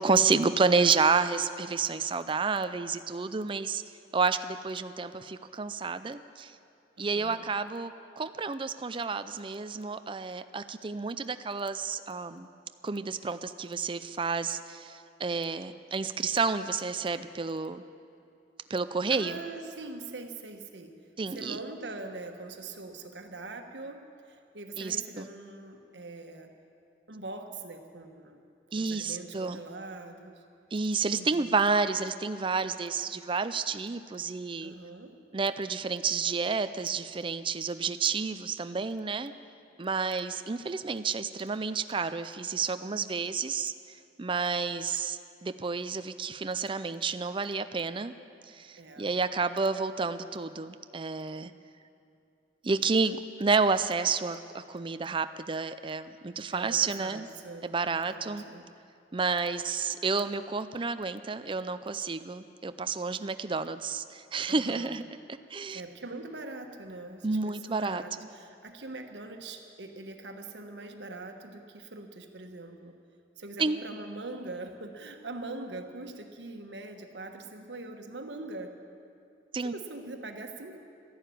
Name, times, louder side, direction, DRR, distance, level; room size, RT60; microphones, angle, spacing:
voice 1, 0.0-3.8 4.1-6.5 7.0-12.5 12.8-17.8 18.7-19.4 21.2-21.6 24.8-25.3 28.7-29.6 30.7-34.7 35.3-39.3 39.8-43.7 44.2-48.1 48.5-51.5 52.6-57.3 57.6-58.4 59.1-65.0 65.5-65.8 67.2-68.0 73.6-73.8 79.5-79.7, right 4 dB, 30° right, 11 dB, 0.5 m, -30 dB
voice 2, 7.0-7.4 19.1-21.0 21.3-26.5 27.1-28.4 28.8-30.4 31.1-31.5 34.6-35.2 48.7-49.2 56.5-58.7 64.5-64.9 65.7-72.9 73.4-78.8 79.6-80.8, right 2 dB, 85° right, 5 dB, 1.4 m, -42 dB
13.5 x 11.5 x 9.2 m, 2.5 s
head